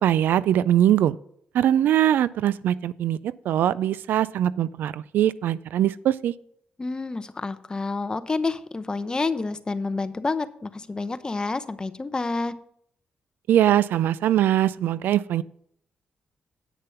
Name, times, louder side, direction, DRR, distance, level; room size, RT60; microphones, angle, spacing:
voice 1, 0.0-1.2 1.5-6.3 13.5-15.4, right 11 dB, 80° right, 19 dB, 0.3 m, -22 dB
voice 2, 6.8-12.5, left 3 dB, 25° left, 12 dB, 0.7 m, -29 dB
9.3 x 6.7 x 5.6 m, 0.69 s
cardioid pair, 85°, 3 cm